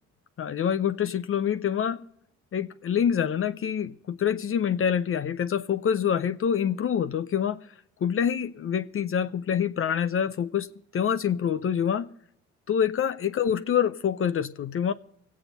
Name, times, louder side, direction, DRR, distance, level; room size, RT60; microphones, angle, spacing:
voice 1, 0.4-2.1 2.5-7.7 8.0-12.2 12.7-14.9, left 8 dB, 45° left, 0.6 m, -26 dB
24.0 x 8.6 x 4.1 m
cardioid pair, 90°, 30 cm